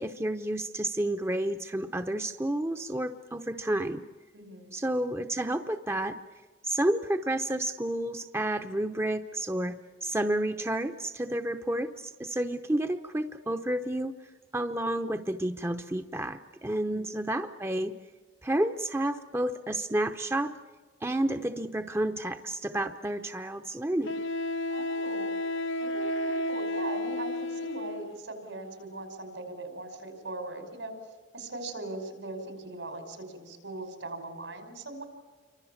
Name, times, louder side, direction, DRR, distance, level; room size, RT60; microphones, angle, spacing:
voice 1, 0.0-4.0 4.7-6.2 6.6-14.1 14.5-17.9 18.4-20.6 21.0-24.1, right 1 dB, 15° right, 7 dB, 0.8 m, -30 dB
voice 2, 4.3-4.7 16.8-17.0 24.7-25.4 25.8-30.9 31.3-35.1, right 2 dB, 80° right, 6 dB, 5.6 m, -40 dB
Wind instrument woodwind instrument, 22.8-22.9 24.1-28.1, left 1 dB, 85° left, 1.1 m, -32 dB
29.0 x 24.5 x 7.3 m, 1.4 s
head